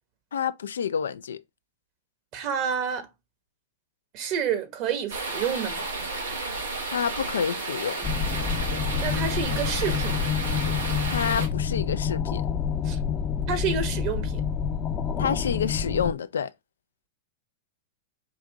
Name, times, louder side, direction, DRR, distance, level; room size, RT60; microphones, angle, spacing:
voice 1, 0.3-1.4 6.9-8.0 11.1-12.4 15.2-16.5, left 7 dB, 80° left, 0.3 m, -28 dB
voice 2, 2.3-3.1 4.1-5.9 9.0-10.3 12.8-13.0 13.5-14.4, right 7 dB, 45° right, 1.3 m, -29 dB
sound 1, 5.1-11.5, right 3 dB, 90° right, 1.5 m, -32 dB
sound 2, 8.0-16.1, left 7 dB, 35° left, 0.6 m, -28 dB
4.9 x 2.6 x 3.5 m
hypercardioid pair, 110°, 0 cm